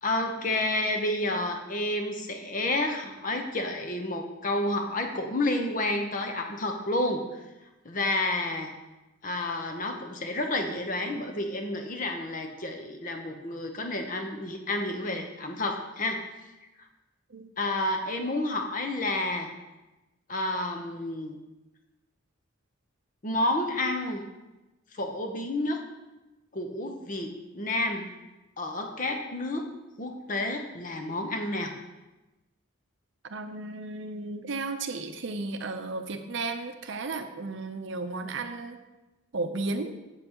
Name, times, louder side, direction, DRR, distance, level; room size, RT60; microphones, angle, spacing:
voice 1, 0.0-7.4 7.8-8.7 9.2-16.2 17.6-19.5 20.3-21.4 23.2-24.3 24.9-25.8 26.5-28.1 28.6-29.6 30.0-31.7, left 2 dB, 40° left, 4 dB, 0.8 m, -30 dB
voice 2, 33.2-38.8 39.3-39.9, right 3 dB, 60° right, 7 dB, 0.6 m, -34 dB
7.8 x 7.6 x 2.9 m, 1.1 s
head